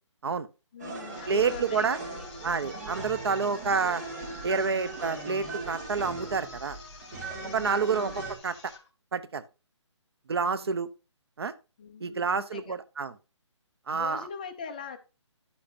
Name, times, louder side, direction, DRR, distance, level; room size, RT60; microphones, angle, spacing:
voice 1, 0.7-2.3 7.3-8.0 10.4-10.8 11.8-12.8 13.9-15.0, left 6 dB, 15° left, 0.5 m, -42 dB
sound 1, 0.8-8.4, right 3 dB, 35° right, 2.4 m, -39 dB
sound 2, 1.1-8.9, left 4 dB, 55° left, 3.4 m, -49 dB
voice 2, 1.3-2.0 2.4-4.0 4.4-6.8 7.5-8.7 9.1-9.4 10.3-10.9 11.4-11.5 12.0-13.1 13.9-14.3, right 5 dB, 55° right, 0.9 m, -28 dB
11.0 x 8.7 x 2.7 m
hypercardioid pair, 170°, 16 cm